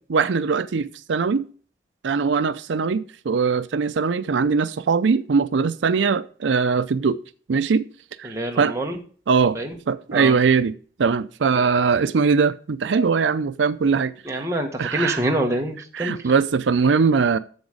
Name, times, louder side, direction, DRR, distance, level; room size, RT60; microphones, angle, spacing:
voice 1, 0.1-1.4 2.0-7.2 7.5-7.8 8.2-8.8 9.3-14.5 14.8-15.2 15.9-17.4, right 5 dB, 85° right, 0.5 m, -21 dB
voice 2, 8.2-8.9 9.5-9.7 10.1-10.3 14.3-16.2, right 1 dB, 15° right, 1.3 m, -26 dB
8.0 x 7.1 x 4.9 m
head